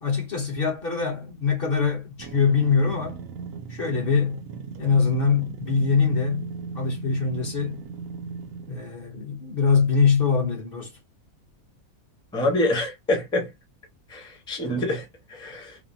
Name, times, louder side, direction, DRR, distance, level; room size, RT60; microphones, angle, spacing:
voice 1, 0.0-3.2 3.7-4.4 4.8-6.5 6.7-7.8 8.7-10.9, left 5 dB, 40° left, 1.1 m, -23 dB
sound 1, 2.2-8.9, right 5 dB, 70° right, 0.9 m, -38 dB
voice 2, 12.3-13.5 14.1-15.8, left 1 dB, 5° left, 0.7 m, -26 dB
3.4 x 2.1 x 2.5 m
omnidirectional pair, 1.6 m